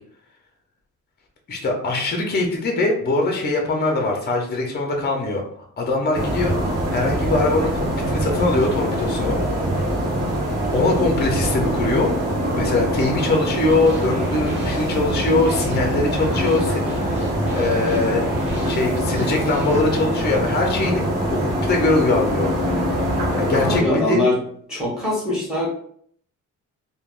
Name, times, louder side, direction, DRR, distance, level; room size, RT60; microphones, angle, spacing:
voice 1, 1.5-5.4 5.8-9.4 10.7-12.1 12.5-17.2 17.5-18.2 18.7-22.5 23.4-24.2, left 2 dB, 30° left, 1 dB, 0.5 m, -22 dB
sound 1, 6.1-23.8, equal, 50° right, 0.9 m, -23 dB
sound 2, 13.7-19.8, right 1 dB, 35° right, 1.3 m, -36 dB
voice 2, 23.6-24.4 24.7-25.7, left 1 dB, ahead, -6 dB, 1.3 m, -22 dB
3.3 x 2.2 x 2.4 m, 0.63 s
wide cardioid pair, 135°, 32 cm